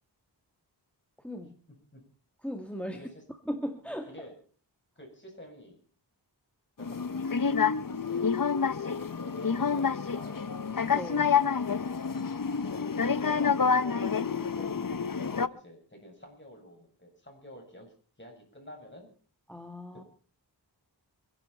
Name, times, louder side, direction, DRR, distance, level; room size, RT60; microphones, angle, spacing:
voice 1, 1.2-1.5 2.4-3.0 3.5-4.1 10.9-11.4 14.6-14.7 19.5-20.0, equal, 5° left, 5 dB, 1.9 m, -37 dB
voice 2, 2.9-3.2 4.1-4.3 5.0-5.8 6.8-8.4 8.7-10.5 12.7-17.9 18.2-19.1, left 1 dB, 25° left, 1 dB, 7.8 m, -49 dB
sound 1, 6.8-15.5, left 6 dB, 50° left, 0.8 m, -28 dB
28.0 x 11.0 x 4.4 m, 0.41 s
wide cardioid pair, 60°, 43 cm